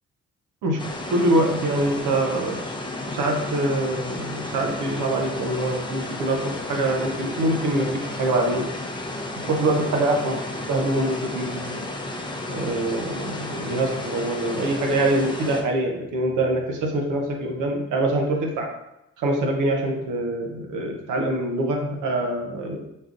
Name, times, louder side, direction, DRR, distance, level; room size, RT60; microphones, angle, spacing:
sound 1, 0.8-15.6, left 2 dB, 15° left, 0.6 m, -33 dB
voice 1, 1.1-2.7 3.1-8.7 9.4-10.4 10.7-11.9 12.5-18.7 19.2-22.8, right 1 dB, 85° right, 2 dB, 0.8 m, -24 dB
4.3 x 3.6 x 2.5 m, 0.88 s
supercardioid pair, 55°, 30 cm